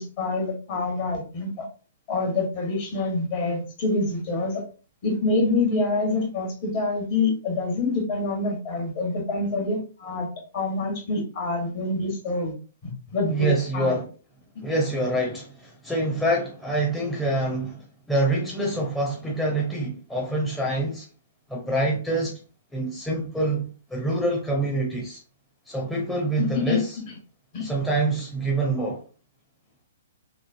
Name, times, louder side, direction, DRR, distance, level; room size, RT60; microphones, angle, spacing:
voice 1, 0.0-1.6 2.1-4.6 5.0-10.3 10.5-12.5 12.8-14.0 26.4-26.8 27.1-27.2 27.5-27.7, left 3 dB, 45° left, 1.1 m, -26 dB
voice 2, 13.3-14.1 14.6-21.1 21.5-22.4 22.7-25.2 25.7-27.0 27.6-29.1, right 2 dB, 5° left, 0.6 m, -26 dB
3.0 x 2.0 x 2.4 m
hypercardioid pair, 130°, 0 cm